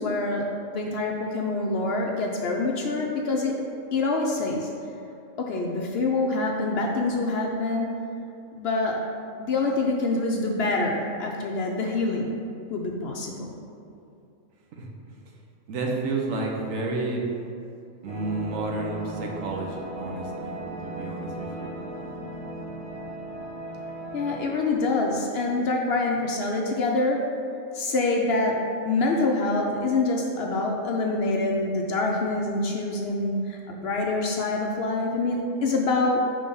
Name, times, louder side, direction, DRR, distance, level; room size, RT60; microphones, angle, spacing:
voice 1, 0.0-3.5 3.9-4.7 5.4-7.9 8.5-9.0 9.4-12.3 12.7-13.5 24.1-27.2 27.7-28.6 28.9-36.2, left 3 dB, 60° left, 0 dB, 0.7 m, -26 dB
voice 2, 15.7-17.2 18.0-21.8, right 3 dB, 70° right, 0 dB, 1.2 m, -31 dB
sound 1, 18.1-24.7, right 1 dB, 5° left, 1.0 m, -37 dB
5.2 x 3.4 x 5.4 m, 2.6 s
omnidirectional pair, 1.4 m